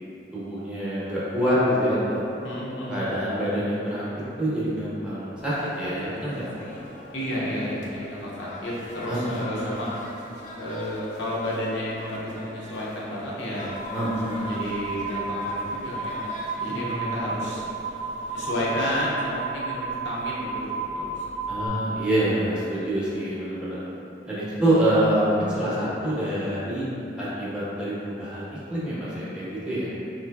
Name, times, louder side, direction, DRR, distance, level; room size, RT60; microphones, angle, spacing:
voice 1, 0.3-2.2 2.9-4.1 4.4-6.5 9.1-9.7 13.9-14.5 16.7-17.2 21.5-23.8 24.2-26.9 27.2-29.9, right 1 dB, 5° right, -10 dB, 0.7 m, -26 dB
voice 2, 2.4-3.1 7.1-10.0 10.6-13.7 14.2-16.3 16.6-17.6 18.3-21.2 22.7-22.8, left 1 dB, 80° left, -7 dB, 0.8 m, -31 dB
sound 1, 5.4-19.1, left 1 dB, 40° left, 0.4 m, -43 dB
sound 2, 13.7-21.7, right 3 dB, 55° right, 0.5 m, -32 dB
3.9 x 3.0 x 2.3 m, 3.0 s
head